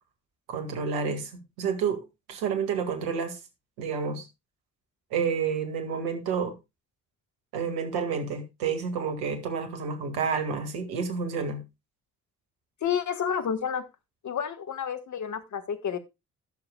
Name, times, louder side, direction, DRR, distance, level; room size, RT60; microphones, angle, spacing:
voice 1, 0.5-2.0 2.3-3.4 3.8-4.2 5.1-6.6 7.5-11.6, right 6 dB, 70° right, 1.9 m, -29 dB
voice 2, 12.8-13.8 14.2-16.0, left 7 dB, 45° left, 1.4 m, -30 dB
19.5 x 6.9 x 2.2 m
figure-of-eight pair, 45°, 39 cm